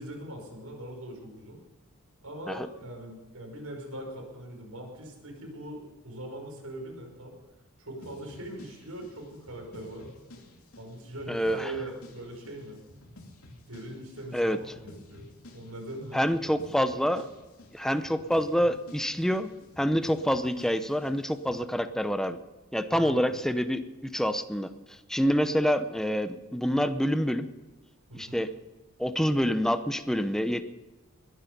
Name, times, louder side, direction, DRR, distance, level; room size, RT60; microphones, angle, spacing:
voice 1, 0.0-1.6 2.2-7.4 7.8-10.1 10.8-12.8 13.7-14.6 14.8-15.2 15.5-16.2 22.9-23.3 28.1-28.4, right 1 dB, 85° right, 1 dB, 5.4 m, -41 dB
sound 1, 8.0-21.7, left 1 dB, 90° left, 2.7 m, -52 dB
voice 2, 11.3-11.7 14.3-14.6 16.1-17.3 17.7-19.5 19.8-22.4 22.7-24.7 25.1-27.5 28.1-28.5 29.0-30.6, equal, ahead, 10 dB, 0.7 m, -27 dB
21.5 x 10.5 x 5.4 m, 1.2 s
head